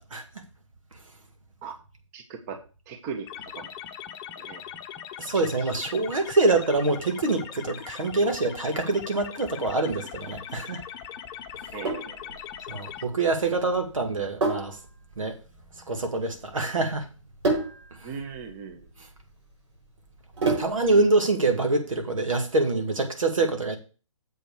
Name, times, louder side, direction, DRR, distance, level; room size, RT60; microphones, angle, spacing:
voice 1, 2.1-2.6 2.9-3.3 3.5-3.7 4.4-4.6 5.3-5.7 11.7-12.4 18.0-18.9, right 5 dB, 30° right, 1.3 m, -39 dB
sound 1, 3.3-13.0, left 9 dB, 20° left, 0.9 m, -40 dB
voice 2, 5.2-10.8 12.7-14.8 15.2-15.4 15.9-17.1 18.0-18.1 20.4-23.8, right 2 dB, 85° right, 2.1 m, -25 dB
Sink (filling or washing), 11.5-21.0, right 3 dB, 65° right, 4.8 m, -32 dB
7.7 x 5.2 x 6.6 m
hypercardioid pair, 140°, 17 cm